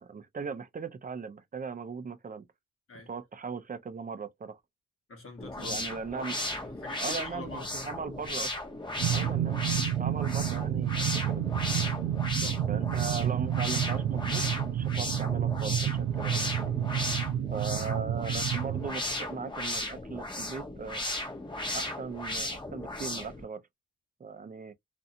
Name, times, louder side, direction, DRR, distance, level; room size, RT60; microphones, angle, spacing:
voice 1, 0.0-2.4 3.1-4.6 5.6-6.4 7.0-8.5 9.1-11.4 12.7-16.8 17.5-21.0 21.7-23.6 24.2-24.7, right 5 dB, 25° right, 0.5 m, -39 dB
voice 2, 5.1-7.7 12.3-12.7 17.1-17.3, left 3 dB, 40° left, 1.1 m, -45 dB
sound 1, 5.4-23.4, left 1 dB, 15° left, 0.9 m, -36 dB
sound 2, 9.0-18.9, right 11 dB, 80° right, 0.5 m, -30 dB
2.6 x 2.2 x 2.6 m
cardioid pair, 95°, 33 cm